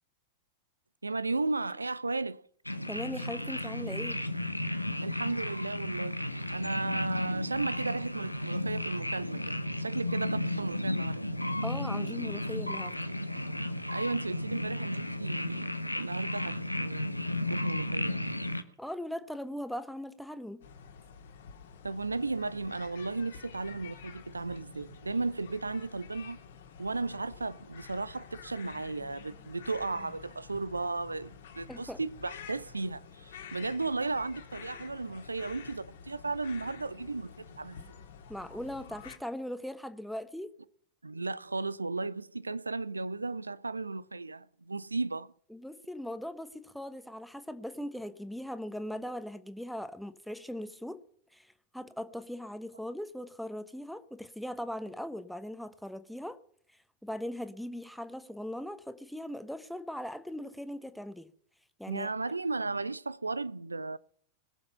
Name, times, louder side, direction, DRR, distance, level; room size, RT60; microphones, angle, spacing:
voice 1, 1.0-2.4 5.0-11.2 13.9-18.3 21.8-26.4 26.8-38.0 41.0-45.3 61.9-64.0, right 3 dB, 80° right, 0.5 m, -35 dB
sound 1, 2.6-18.6, left 1 dB, 90° left, 0.9 m, -34 dB
voice 2, 2.9-4.2 11.6-13.0 18.8-20.6 31.7-32.0 38.3-40.5 45.5-51.0 51.3-56.4 57.0-61.3 61.8-62.1, left 1 dB, ahead, 1.0 m, -39 dB
sound 2, 20.6-39.2, left 7 dB, 60° left, 1.8 m, -50 dB
21.5 x 7.3 x 5.6 m
figure-of-eight pair, 90°, 0 cm